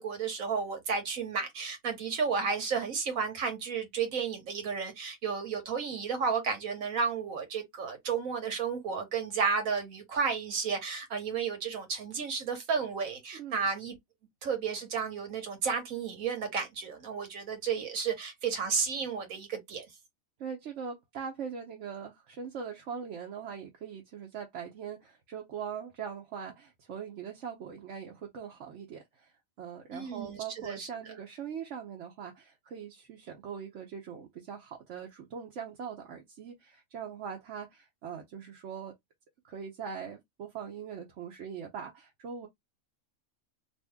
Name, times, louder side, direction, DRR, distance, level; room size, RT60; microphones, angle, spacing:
voice 1, 0.0-14.0 14.4-19.9 29.9-30.9, right 5 dB, 80° right, 1.5 m, -32 dB
voice 2, 20.4-29.3 29.6-38.9 39.4-42.5, right 7 dB, 65° right, 1.0 m, -41 dB
2.7 x 2.6 x 3.4 m
omnidirectional pair, 1.4 m